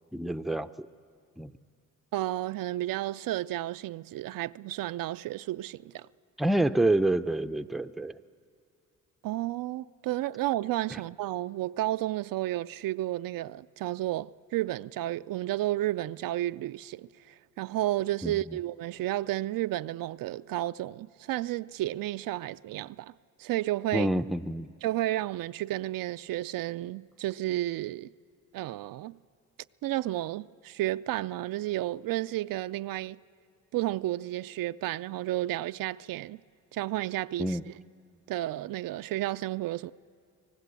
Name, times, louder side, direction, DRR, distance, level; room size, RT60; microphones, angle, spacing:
voice 1, 0.1-0.9 1.4-1.5 6.4-8.1 10.9-11.0 18.2-18.3 23.9-24.7 37.4-37.6, right 1 dB, ahead, 0.5 m, -27 dB
voice 2, 2.1-6.1 9.2-23.1 23.4-24.1 24.8-28.1 28.5-29.2 29.8-33.2 33.7-36.4 36.7-37.8 38.3-39.9, right 15 dB, 75° right, 0.5 m, -32 dB
24.5 x 18.5 x 8.3 m
cardioid pair, 85°, 34 cm